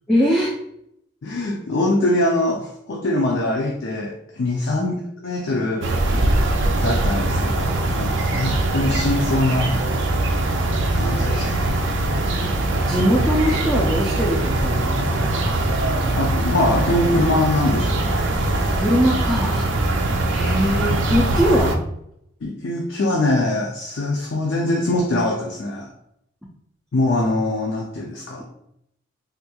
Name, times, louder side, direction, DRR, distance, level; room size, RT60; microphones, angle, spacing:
voice 1, 0.1-0.5 4.8-4.9 8.4-8.6 11.3-11.7 12.4-12.5 12.9-15.1 18.8-19.7 20.3-21.8, equal, ahead, -4 dB, 0.3 m, -22 dB
voice 2, 1.2-5.0 5.2-5.9 6.8-9.8 10.9-11.9 16.1-18.2 22.4-25.9 26.9-28.4, left 1 dB, 65° left, 0 dB, 0.4 m, -23 dB
sound 1, 5.8-21.8, right 2 dB, 65° right, 0.4 m, -21 dB
3.4 x 2.9 x 2.3 m, 0.74 s
head